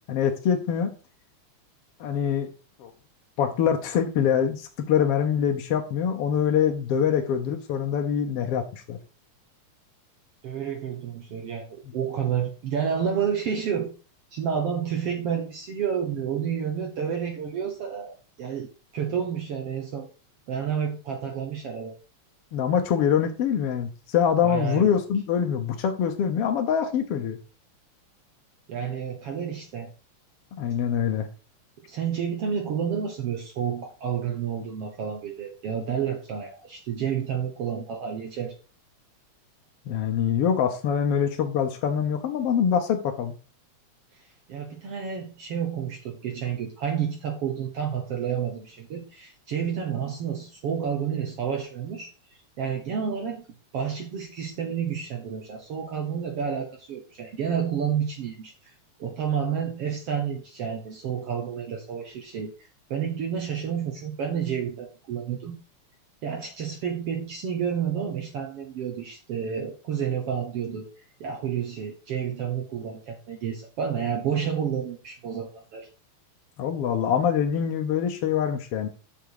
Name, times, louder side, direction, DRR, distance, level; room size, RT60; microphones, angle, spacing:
voice 1, 0.1-0.9 2.0-2.5 2.8-2.9 3.4-9.0 22.5-27.4 30.6-31.3 39.9-43.3 76.6-78.9, left 8 dB, 65° left, 4 dB, 1.8 m, -24 dB
voice 2, 10.4-13.9 14.3-18.7 18.9-20.1 20.5-22.0 24.4-24.9 28.7-29.9 31.8-38.5 44.1-53.5 53.7-58.7 59.0-65.6 66.2-70.9 71.2-75.9, right 7 dB, 60° right, 2 dB, 2.1 m, -30 dB
7.7 x 6.9 x 4.9 m, 0.34 s
omnidirectional pair, 3.3 m